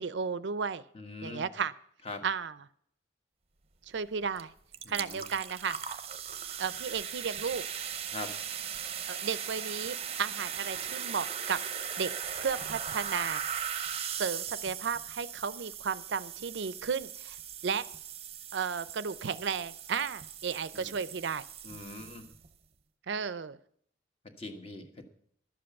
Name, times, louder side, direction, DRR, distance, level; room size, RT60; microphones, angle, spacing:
voice 1, 0.0-0.8 1.2-1.7 2.2-2.6 3.9-4.5 4.9-5.8 6.6-7.6 9.1-11.6 12.0-12.1 12.4-13.4 14.2-17.4 17.6-17.9 18.5-21.4 23.1-23.6, right 6 dB, 70° right, 16 dB, 0.5 m, -33 dB
voice 2, 0.9-1.4 2.0-2.2 4.8-5.3 8.1-8.3 20.7-20.9 21.6-22.3 24.4-25.0, left 2 dB, 30° left, 5 dB, 1.4 m, -42 dB
sound 1, 4.4-4.5 4.7-22.5, right 8 dB, 30° right, 0.7 m, -39 dB
12.0 x 7.7 x 7.0 m, 0.65 s
head